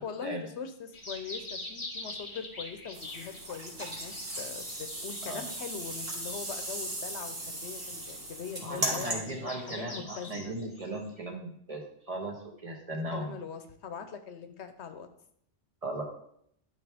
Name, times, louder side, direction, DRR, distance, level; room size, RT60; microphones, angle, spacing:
voice 1, 0.0-10.6 12.9-15.1, left 6 dB, 75° left, 9 dB, 1.0 m, -42 dB
sound 1, 0.9-11.1, left 2 dB, 30° left, 1.0 m, -45 dB
sound 2, 2.9-9.1, right 1 dB, 60° right, 2.1 m, -37 dB
voice 2, 8.6-13.4 15.8-16.0, right 2 dB, 30° right, 1 dB, 1.4 m, -37 dB
11.0 x 4.6 x 3.5 m, 0.69 s
omnidirectional pair, 1.2 m